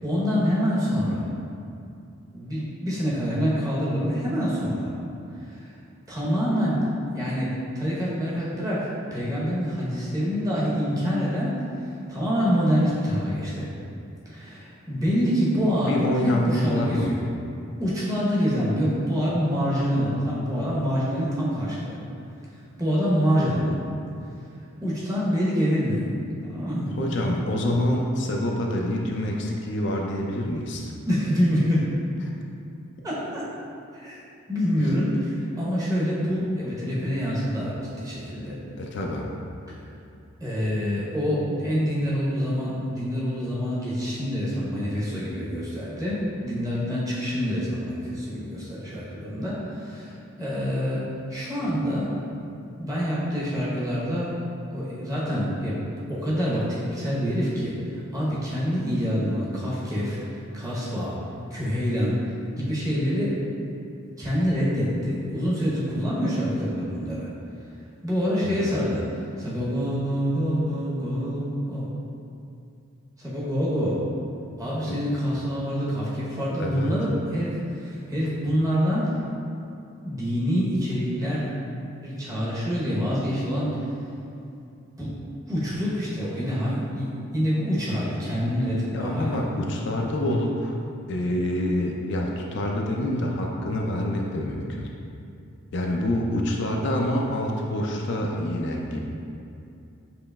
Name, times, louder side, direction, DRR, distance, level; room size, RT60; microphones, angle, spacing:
voice 1, 0.0-1.2 2.3-5.0 5.4-5.8 6.1-11.6 12.1-13.7 14.2-17.2 17.8-22.0 22.8-23.8 24.8-26.1 26.4-27.0 31.1-31.9 33.0-33.4 33.9-34.2 34.5-38.6 40.4-52.1 52.8-54.4 54.7-55.8 56.1-61.2 61.5-62.2 62.6-63.4 64.0-67.3 68.0-71.9 73.2-74.0 74.6-79.2 80.0-81.6 82.0-83.9 85.0-85.1 85.5-89.4, equal, 15° right, -8 dB, 0.9 m, -26 dB
voice 2, 15.8-17.1 27.0-30.9 38.8-39.3 68.4-68.7 74.9-75.0 76.6-76.9 88.9-90.8 91.1-94.9 95.7-99.0, left 1 dB, 55° left, 0 dB, 0.4 m, -26 dB
6.9 x 3.1 x 2.3 m, 2.6 s
head